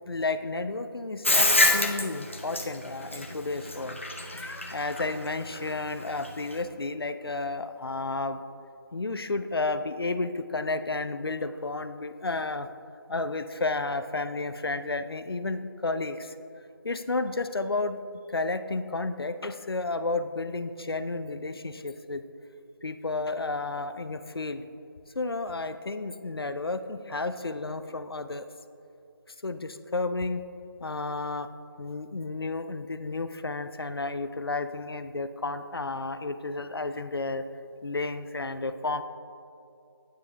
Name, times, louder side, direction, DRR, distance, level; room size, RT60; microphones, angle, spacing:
voice 1, 0.1-8.4 8.9-12.7 13.1-16.4 16.8-18.0 18.3-22.2 22.8-24.7 25.1-28.5 29.4-30.5 30.8-31.5 31.8-37.4 37.8-39.0, left 3 dB, 80° left, 11 dB, 0.5 m, -32 dB
Bathtub (filling or washing), 1.3-6.6, left 2 dB, 35° left, 0.5 m, -26 dB
10.5 x 9.3 x 2.3 m, 2.7 s
figure-of-eight pair, 175°, 12 cm